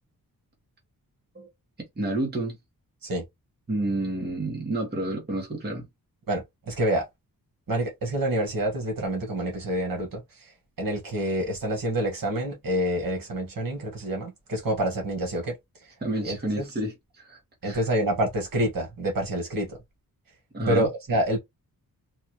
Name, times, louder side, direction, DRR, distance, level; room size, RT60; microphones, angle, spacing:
voice 1, 2.0-2.6 3.7-5.8 16.0-17.8 20.5-20.9, right 1 dB, 25° right, 1.5 m, -30 dB
voice 2, 6.3-7.1 7.7-10.2 10.8-15.5 16.2-16.7 17.6-19.8 20.7-21.4, right 1 dB, 65° right, 1.9 m, -27 dB
4.1 x 2.6 x 3.0 m
wide cardioid pair, 170°, 36 cm